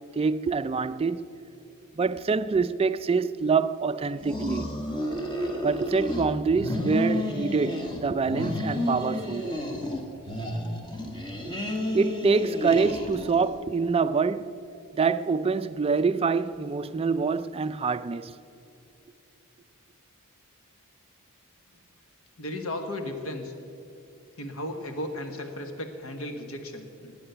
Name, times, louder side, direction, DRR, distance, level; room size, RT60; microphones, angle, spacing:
voice 1, 0.2-1.3 2.0-4.7 5.6-9.5 11.9-14.6 15.0-18.3, right 4 dB, 25° right, 0.3 m, -25 dB
sound 1, 4.2-6.3 6.5-8.0 8.3-10.0 10.3-13.5, left 1 dB, 20° left, 1.6 m, -31 dB
voice 2, 22.4-23.5 24.4-27.1, left 1 dB, 70° left, 1.3 m, -35 dB
19.5 x 8.8 x 6.8 m
head